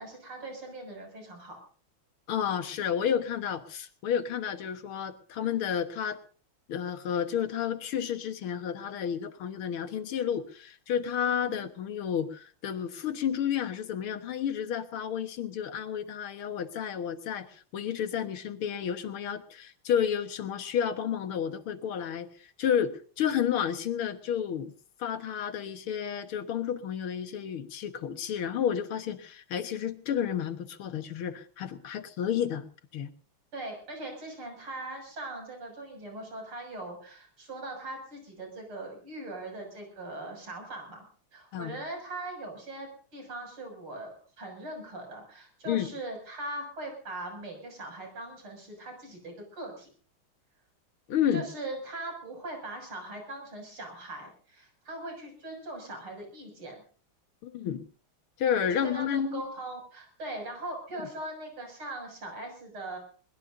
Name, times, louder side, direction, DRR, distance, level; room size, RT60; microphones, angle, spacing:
voice 1, 0.0-1.6 11.2-11.6 33.5-41.1 41.3-49.9 51.3-56.8 58.7-63.0, right 2 dB, 75° right, 3 dB, 7.6 m, -40 dB
voice 2, 2.3-6.2 6.7-22.3 22.6-24.7 25.0-32.7 32.9-33.1 41.5-41.8 45.7-45.9 51.1-51.4 57.4-57.9 58.4-59.4, left 8 dB, 80° left, 10 dB, 2.2 m, -31 dB
22.0 x 21.0 x 2.7 m, 0.43 s
omnidirectional pair, 2.3 m